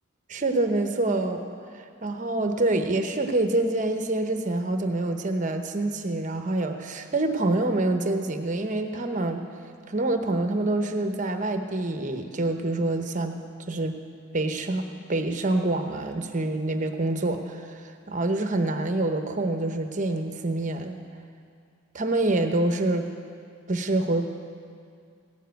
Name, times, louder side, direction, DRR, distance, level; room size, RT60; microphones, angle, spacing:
voice 1, 0.3-1.4 1.7-9.4 9.9-13.4 13.7-14.0 14.3-21.0 21.9-23.1 23.7-24.2, right 2 dB, 40° right, 6 dB, 0.8 m, -26 dB
16.0 x 7.4 x 9.2 m, 2.2 s
head